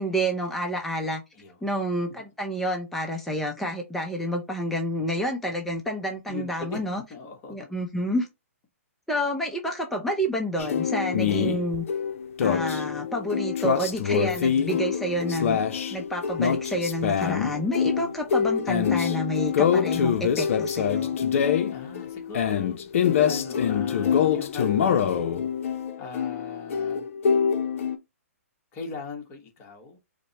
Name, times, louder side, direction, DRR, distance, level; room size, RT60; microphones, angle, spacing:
voice 1, 0.0-1.2 1.6-7.0 7.5-8.3 9.1-11.8 12.4-15.6 15.9-21.1, equal, 5° left, 0.5 m, -29 dB
voice 2, 1.3-1.7 6.3-6.8 7.1-7.7 14.6-14.7 18.0-18.2 21.7-25.4 26.0-27.1 28.7-30.0, left 4 dB, 30° left, 1.2 m, -39 dB
sound 1, 10.6-28.0, left 7 dB, 60° left, 0.6 m, -25 dB
5.0 x 2.1 x 2.9 m
hypercardioid pair, 140°, 8 cm